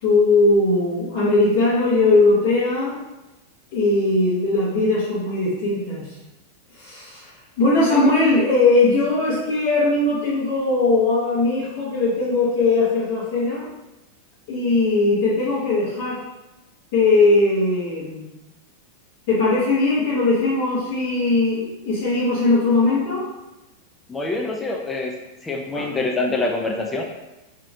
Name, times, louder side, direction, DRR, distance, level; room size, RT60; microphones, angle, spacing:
voice 1, 0.0-3.0 3.7-6.1 6.7-7.3 7.6-13.7 14.5-16.2 16.9-18.3 19.3-23.2 25.7-25.9, left 2 dB, 50° left, -10 dB, 0.9 m, -19 dB
voice 2, 24.1-25.1 25.4-27.0, left 2 dB, 15° left, 1 dB, 0.4 m, -25 dB
3.0 x 2.7 x 2.6 m, 0.99 s
figure-of-eight pair, 90°, 0 cm